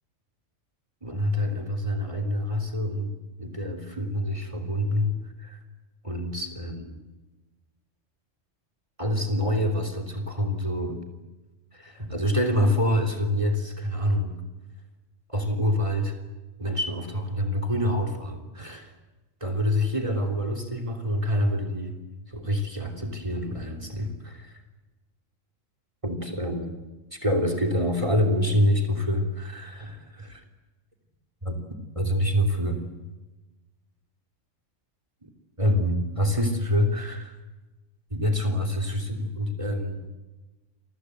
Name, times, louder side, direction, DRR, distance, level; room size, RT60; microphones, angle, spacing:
voice 1, 1.0-5.6 6.0-7.0 9.0-11.0 11.7-14.4 15.3-16.2 16.6-18.9 19.4-21.9 22.3-24.4 26.0-26.7 27.1-30.4 31.4-31.6 31.9-32.8 35.2-35.3 35.6-37.4 38.1-40.0, equal, 25° right, 7 dB, 3.3 m, -26 dB
29.0 x 23.5 x 8.1 m, 1.1 s
omnidirectional pair, 1.3 m